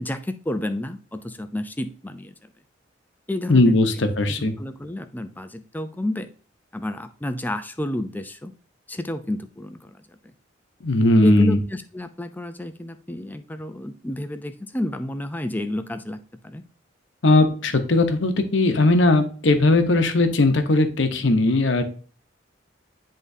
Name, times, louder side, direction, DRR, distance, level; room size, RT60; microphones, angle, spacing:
voice 1, 0.0-2.3 3.3-3.7 4.3-6.3 6.7-8.5 8.9-9.9 11.2-16.6, left 1 dB, 10° left, 9 dB, 0.5 m, -30 dB
voice 2, 3.5-4.5 10.8-11.6 17.2-21.8, left 2 dB, 70° left, 7 dB, 0.8 m, -18 dB
10.0 x 3.7 x 2.7 m, 0.40 s
head